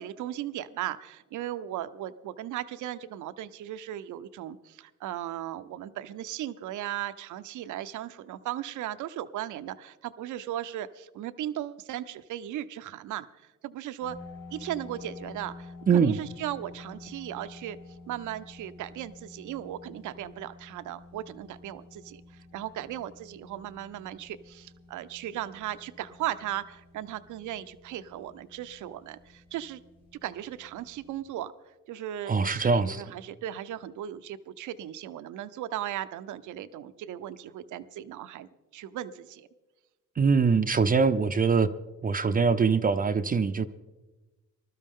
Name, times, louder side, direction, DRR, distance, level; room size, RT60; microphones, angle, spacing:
voice 1, 0.0-14.2 14.5-17.8 18.1-29.8 30.2-31.5 31.9-39.5, right 12 dB, 75° right, 0.7 m, -37 dB
sound 1, 14.0-31.2, left 3 dB, 85° left, 4.8 m, -50 dB
voice 2, 15.9-16.2 32.3-33.0 40.2-41.7 42.0-43.7, right 5 dB, 30° right, 0.5 m, -23 dB
20.5 x 12.5 x 3.7 m
cardioid pair, 90°, 30 cm